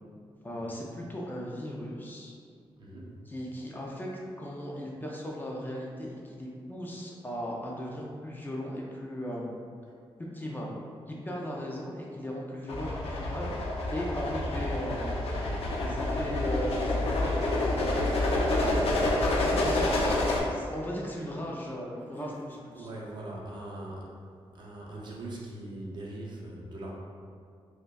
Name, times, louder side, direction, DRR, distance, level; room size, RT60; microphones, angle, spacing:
voice 1, 0.4-2.3 3.3-4.1 4.4-9.5 10.3-10.7 11.1-12.9 13.2-13.6 13.9-15.2 15.8-18.2 19.3-19.9 20.5-22.9, equal, 20° left, -3 dB, 0.4 m, -37 dB
voice 2, 2.8-3.1 20.6-20.7 22.1-22.3 22.7-24.1 24.5-26.9, right 1 dB, 45° right, -4 dB, 0.7 m, -41 dB
sound 1, 12.7-20.4, left 2 dB, 80° left, 0.6 m, -28 dB
5.2 x 2.2 x 2.3 m, 2.2 s
wide cardioid pair, 125°, 10 cm